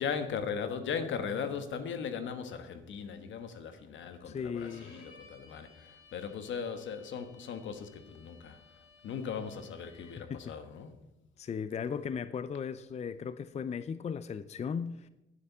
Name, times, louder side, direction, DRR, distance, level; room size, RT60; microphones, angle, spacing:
voice 1, 0.0-8.6 9.0-10.9, left 6 dB, 70° left, 9 dB, 1.3 m, -38 dB
voice 2, 4.2-4.9 9.9-10.5 11.4-15.1, left 6 dB, 35° left, 14 dB, 0.5 m, -37 dB
Bowed string instrument, 4.6-10.4, left 3 dB, 90° left, 4.7 m, -59 dB
10.0 x 9.8 x 5.6 m, 0.93 s
cardioid pair, 90°, 20 cm